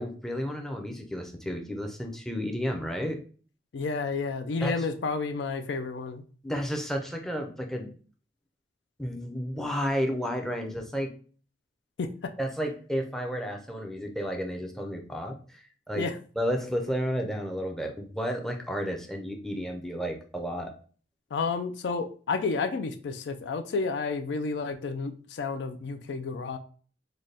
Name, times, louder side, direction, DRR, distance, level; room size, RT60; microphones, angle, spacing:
voice 1, 0.0-3.2 4.6-4.8 6.4-7.9 9.0-11.1 12.4-16.1 16.4-20.7, equal, ahead, 2 dB, 0.5 m, -32 dB
voice 2, 3.7-6.2 12.0-12.3 15.9-16.1 21.3-26.6, left 4 dB, 70° left, 8 dB, 0.4 m, -31 dB
3.9 x 2.2 x 3.3 m, 0.41 s
head